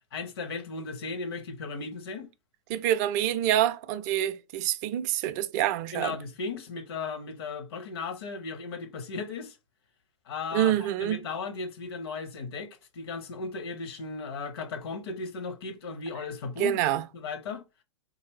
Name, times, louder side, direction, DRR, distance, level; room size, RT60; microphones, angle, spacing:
voice 1, 0.1-2.3 5.9-9.6 10.3-16.8 17.1-17.6, left 4 dB, 55° left, 0.9 m, -36 dB
voice 2, 2.7-6.2 10.5-11.3 16.6-17.0, right 12 dB, 35° right, 0.4 m, -26 dB
4.2 x 2.6 x 3.1 m
figure-of-eight pair, 100°, 16 cm